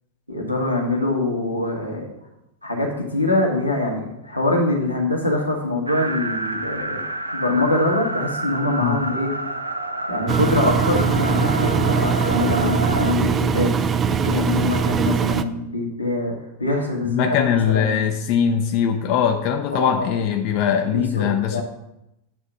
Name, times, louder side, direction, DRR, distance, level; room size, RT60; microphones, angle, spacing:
voice 1, 0.3-2.1 2.6-9.3 10.1-13.7 14.1-18.0 19.7-20.1 20.9-21.6, left 2 dB, 90° left, -1 dB, 1.5 m, -24 dB
sound 1, 5.9-13.1, right 2 dB, 85° right, 0.5 m, -28 dB
Engine, 10.3-15.4, right 6 dB, 25° right, 0.4 m, -21 dB
voice 2, 17.0-21.6, left 8 dB, 45° left, 5 dB, 0.6 m, -21 dB
8.6 x 3.7 x 5.9 m, 0.85 s
figure-of-eight pair, 90°, 0 cm